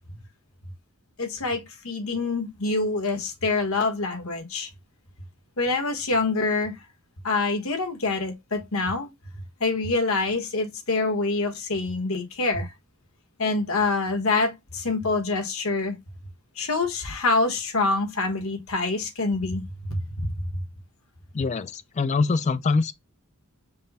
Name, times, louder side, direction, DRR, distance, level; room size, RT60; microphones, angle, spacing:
voice 1, 1.2-4.7 5.6-6.7 7.2-9.1 9.6-12.7 13.4-16.0 16.6-20.3, left 3 dB, 70° left, 1.2 m, -26 dB
voice 2, 21.3-22.9, left 4 dB, 30° left, 0.3 m, -24 dB
5.3 x 2.1 x 4.1 m
head